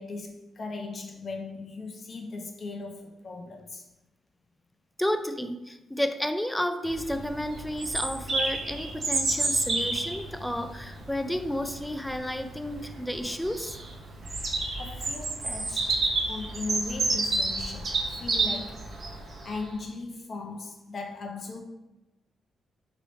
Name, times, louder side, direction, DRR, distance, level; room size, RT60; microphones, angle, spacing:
voice 1, 0.0-3.9 14.8-16.0 16.3-19.0 19.4-21.6, left 3 dB, 50° left, 0.6 m, -38 dB
voice 2, 5.0-13.8, equal, 5° left, 0.4 m, -31 dB
Bird vocalization bird call bird song, 6.8-19.6, right 3 dB, 50° right, 0.8 m, -30 dB
3.1 x 3.0 x 4.0 m
cardioid pair, 80°, 0 cm